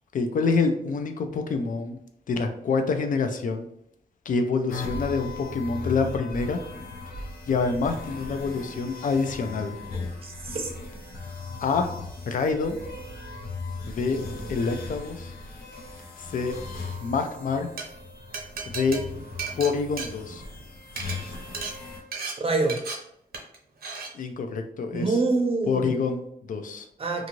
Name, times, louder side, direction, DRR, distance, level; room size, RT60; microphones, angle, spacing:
voice 1, 0.1-2.0 2.3-3.7 4.3-6.6 7.5-9.8 11.6-11.9 12.3-12.8 13.9-14.2 14.5-15.3 16.2-16.6 17.0-17.7 18.7-19.0 19.6-20.4 24.1-25.2 25.7-26.9, left 4 dB, 60° left, 6 dB, 0.4 m, -26 dB
sound 1, 4.7-22.0, left 3 dB, 80° left, 0.8 m, -38 dB
voice 2, 10.2-10.7 22.4-22.8 24.9-25.9 27.0-27.3, right 3 dB, 40° right, 3 dB, 0.5 m, -25 dB
Glass, 17.6-17.8 18.3-20.6 20.9-21.1 21.5-21.7 22.1-22.3 22.7-22.9 23.3-23.6 23.8-24.1, right 5 dB, 80° right, 0.7 m, -34 dB
2.5 x 2.5 x 3.0 m, 0.72 s
wide cardioid pair, 120°, 15 cm